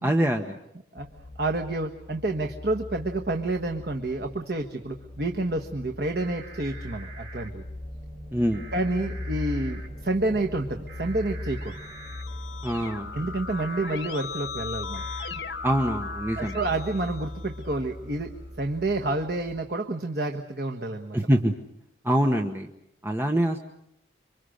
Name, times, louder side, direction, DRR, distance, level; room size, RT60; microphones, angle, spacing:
voice 1, 0.0-0.6 8.3-8.6 12.6-13.2 15.6-16.6 21.1-21.5 22.0-22.7 23.0-23.6, equal, 10° right, 4 dB, 1.1 m, -24 dB
sound 1, 1.0-19.6, left 1 dB, 25° left, 7.8 m, -40 dB
voice 2, 1.4-7.6 8.7-11.8 13.1-15.0 16.4-21.2, right 2 dB, 55° right, 3 dB, 1.3 m, -29 dB
sound 2, 6.1-7.5 8.5-9.9 10.9-12.2 13.6-13.9 14.9-15.3 16.3-16.6, right 4 dB, 80° right, 5.2 m, -46 dB
Keyboard (musical), 11.3-18.0, left 5 dB, 80° left, 1.5 m, -38 dB
27.0 x 25.0 x 6.5 m, 0.79 s
head